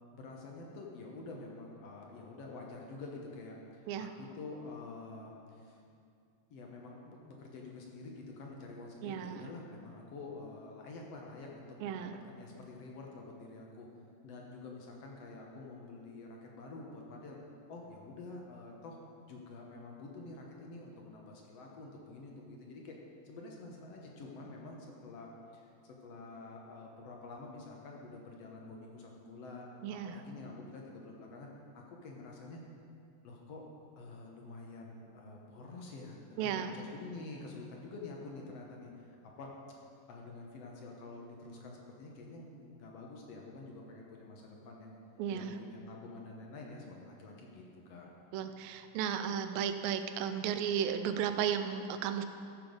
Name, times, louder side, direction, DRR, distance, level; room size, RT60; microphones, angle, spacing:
voice 1, 0.1-5.8 6.5-13.9 14.2-17.4 17.7-19.0 19.3-23.0 23.2-32.6 33.2-33.7 34.0-39.5 40.1-45.0 45.3-48.1, left 3 dB, 65° left, -1 dB, 1.7 m, -48 dB
voice 2, 9.0-9.4 11.8-12.1 29.8-30.2 36.4-36.7 45.2-45.5 48.3-52.3, right 8 dB, 90° right, 9 dB, 2.4 m, -34 dB
14.0 x 6.9 x 5.2 m, 2.5 s
omnidirectional pair, 4.0 m